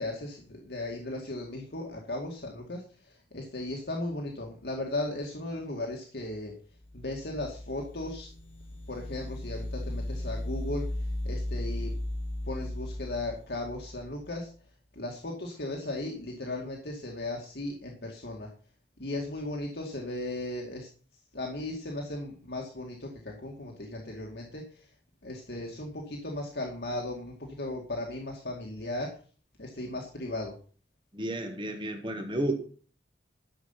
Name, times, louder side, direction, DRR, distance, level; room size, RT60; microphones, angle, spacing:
voice 1, 0.0-6.5 6.9-8.3 8.9-11.9 12.4-14.5 14.9-18.5 19.0-20.9 21.3-24.9 25.2-29.1 29.6-30.5, left 2 dB, 65° left, 0 dB, 2.2 m, -36 dB
sound 1, 6.8-14.3, left 1 dB, 35° left, 5.9 m, -36 dB
voice 2, 31.1-32.5, right 1 dB, 25° right, 5 dB, 1.3 m, -32 dB
13.0 x 6.8 x 5.8 m, 0.40 s
head